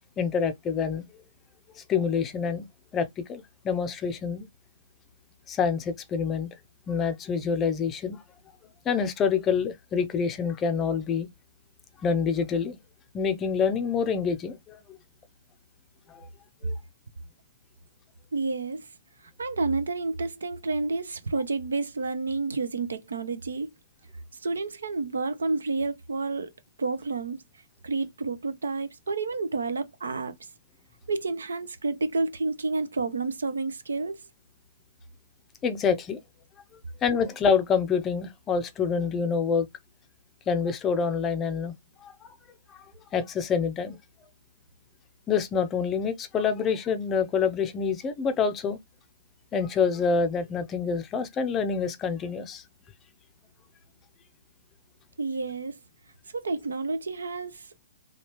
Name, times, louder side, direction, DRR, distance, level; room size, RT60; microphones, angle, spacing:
voice 1, 0.2-1.0 1.8-2.7 2.9-4.5 5.5-6.5 6.9-8.2 8.9-11.3 12.0-12.8 13.1-14.8 16.1-16.3 16.6-16.7 35.6-36.2 37.0-39.7 40.5-41.7 42.0-42.1 43.1-44.0 45.3-48.8 49.5-52.6, left 6 dB, 20° left, 0.5 m, -26 dB
voice 2, 18.3-18.9 19.4-23.7 24.4-26.5 26.8-27.4 27.8-30.3 31.1-34.2 55.2-55.8 56.3-57.7, right 3 dB, 75° right, 0.5 m, -30 dB
3.1 x 2.3 x 3.0 m
figure-of-eight pair, 125°, 0 cm